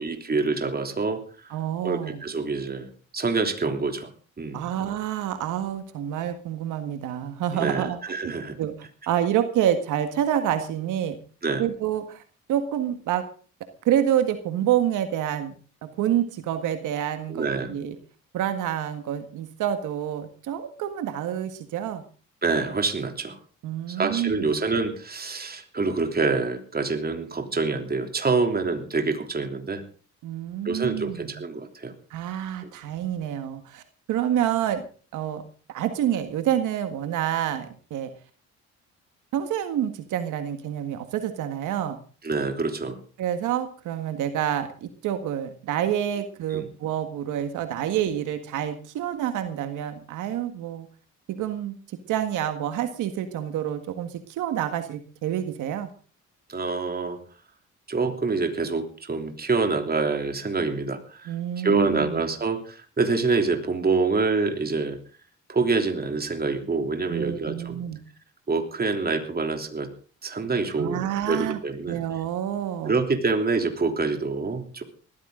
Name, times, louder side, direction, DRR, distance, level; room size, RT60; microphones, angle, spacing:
voice 1, 0.0-1.5 1.8-4.1 4.4-4.7 7.5-8.6 11.4-11.6 17.3-17.7 22.4-23.4 23.9-29.8 30.6-31.9 32.6-32.7 42.2-43.0 46.5-46.7 56.5-57.2 57.9-65.0 65.5-67.8 68.5-69.9 70.2-72.0 72.8-74.8, right 4 dB, 30° right, 5 dB, 3.2 m, -26 dB
voice 2, 1.5-2.2 4.5-8.0 8.2-8.3 8.6-8.7 9.1-11.2 11.6-12.2 12.5-13.2 13.9-15.6 15.8-18.0 18.3-22.0 23.6-24.6 30.2-31.4 32.1-33.8 34.1-34.8 35.1-35.4 35.7-38.1 39.3-42.0 43.2-50.9 51.3-51.8 52.1-55.9 61.3-62.1 67.1-68.0 70.8-71.6 71.8-72.9, right 10 dB, 90° right, 8 dB, 1.8 m, -28 dB
19.5 x 14.5 x 3.9 m, 0.39 s
cardioid pair, 90°, 30 cm